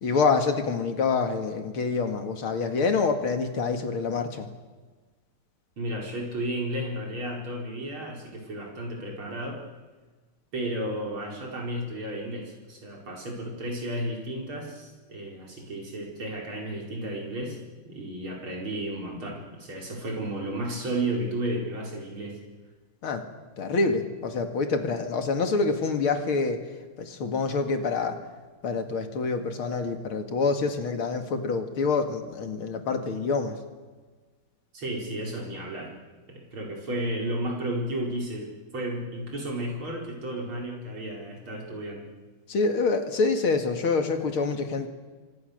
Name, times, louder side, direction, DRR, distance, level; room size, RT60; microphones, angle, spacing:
voice 1, 0.0-4.5 23.0-23.2 23.6-26.6 27.0-28.2 28.6-33.6 42.5-44.9, left 4 dB, 80° left, 6 dB, 2.9 m, -26 dB
voice 2, 5.8-9.6 10.5-17.6 17.8-22.4 34.7-35.9 36.3-42.1, right 1 dB, 75° right, -1 dB, 5.6 m, -33 dB
29.0 x 24.5 x 6.7 m, 1.4 s
omnidirectional pair, 2.3 m